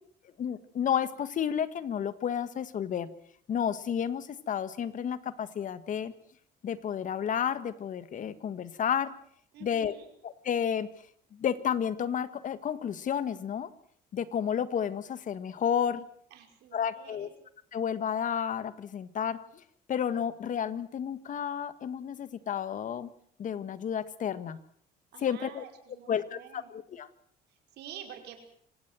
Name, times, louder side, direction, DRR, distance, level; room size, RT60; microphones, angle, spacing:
voice 1, 0.4-3.1 3.5-6.1 6.6-9.1 9.6-9.9 10.2-10.9 11.3-13.7 14.1-16.0 16.7-17.3 17.7-19.6 19.9-23.1 23.4-24.6 25.2-25.6 26.1-27.1, left 8 dB, 50° left, 14 dB, 1.7 m, -31 dB
voice 2, 9.5-10.1 16.3-17.3 25.1-26.7 27.5-28.4, right 10 dB, 80° right, 5 dB, 5.5 m, -48 dB
26.0 x 17.5 x 7.7 m, 0.62 s
cardioid pair, 110°, 17 cm